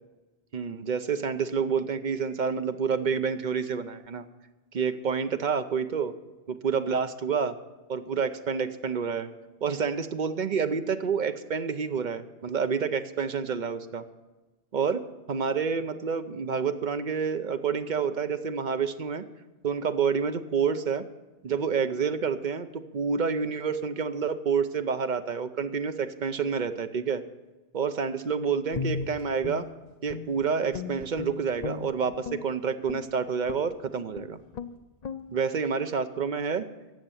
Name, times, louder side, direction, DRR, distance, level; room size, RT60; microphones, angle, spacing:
voice 1, 0.5-4.3 4.7-6.1 6.5-7.5 7.9-9.3 9.6-14.0 14.7-19.2 19.6-21.0 21.4-27.2 27.7-29.7 30.0-34.4 35.3-36.7, right 6 dB, 50° right, 10 dB, 0.8 m, -28 dB
Guitar, 28.7-30.4 30.7-32.4 32.8-33.1 33.5-33.7 34.1-34.3 34.5-34.7 35.0-35.2, left 5 dB, 45° left, 0.6 m, -36 dB
15.5 x 6.7 x 8.9 m, 1.2 s
omnidirectional pair, 1.2 m